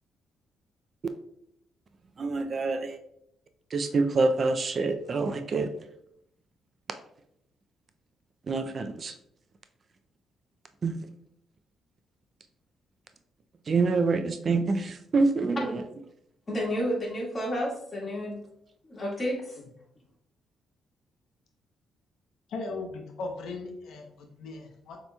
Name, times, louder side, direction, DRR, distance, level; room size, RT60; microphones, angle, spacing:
voice 1, 2.2-3.0 3.7-5.7 8.5-9.1 10.8-10.9 13.7-15.8, right 3 dB, 45° right, 0.4 m, -26 dB
voice 2, 16.5-18.4 18.9-19.4, equal, 30° left, 1.6 m, -30 dB
voice 3, 22.5-25.0, left 3 dB, 80° left, 0.7 m, -38 dB
6.6 x 2.9 x 2.3 m
cardioid pair, 90°, 0 cm